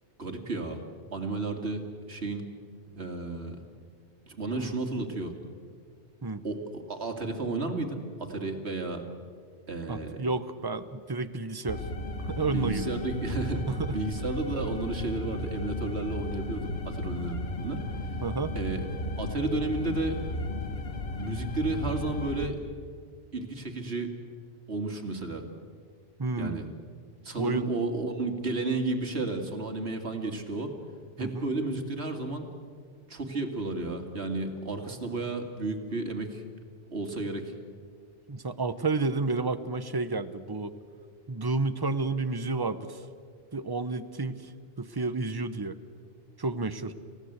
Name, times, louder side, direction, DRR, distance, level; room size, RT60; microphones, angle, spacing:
voice 1, 0.2-0.8 1.1-2.5 2.9-3.6 4.3-5.3 6.4-9.0 9.7-10.2 12.5-13.6 13.9-17.8 18.6-18.9 19.2-20.2 21.2-22.6 23.3-24.1 24.7-25.4 26.4-26.7 27.2-30.7 31.2-32.5 33.1-36.4 36.9-37.5, right 2 dB, 65° right, 4 dB, 2.5 m, -32 dB
voice 2, 9.9-11.8 12.1-12.9 13.7-14.0 18.2-18.5 26.2-26.6 27.4-27.7 31.2-31.3 38.3-40.7 41.3-43.0 43.5-44.5 44.8-45.8 46.4-46.9, right 3 dB, 20° right, 11 dB, 0.8 m, -31 dB
sound 1, 11.7-22.5, left 2 dB, 65° left, 1.5 m, -35 dB
30.0 x 15.5 x 8.0 m, 2.1 s
omnidirectional pair, 1.2 m